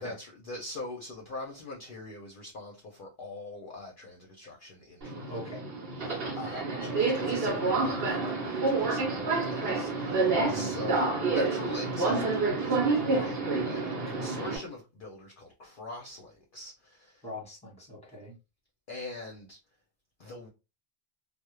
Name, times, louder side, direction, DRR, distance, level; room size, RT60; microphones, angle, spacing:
voice 1, 0.0-5.3 6.0-12.2 12.6-17.2 18.9-19.6 20.2-20.5, left 2 dB, 55° left, 0.7 m, -43 dB
Subway metro underground, 5.0-14.6, right 3 dB, 55° right, 0.9 m, -28 dB
voice 2, 5.3-5.6 10.4-10.8 17.2-18.3, equal, 5° left, 0.9 m, -41 dB
2.3 x 2.1 x 3.0 m
omnidirectional pair, 1.3 m